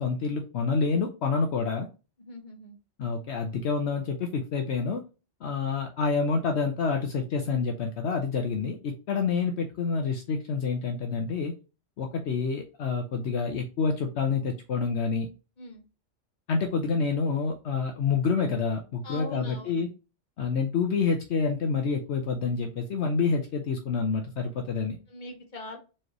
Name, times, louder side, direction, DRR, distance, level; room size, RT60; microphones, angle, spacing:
voice 1, 0.0-1.9 3.0-5.0 5.4-11.5 12.0-15.3 16.5-19.9 20.4-25.0, left 5 dB, 70° left, 3 dB, 1.0 m, -28 dB
voice 2, 2.2-2.8 15.6-15.8 19.0-19.8 25.1-25.8, left 1 dB, 40° left, 3 dB, 1.2 m, -41 dB
4.5 x 3.2 x 2.9 m, 0.31 s
omnidirectional pair, 1.2 m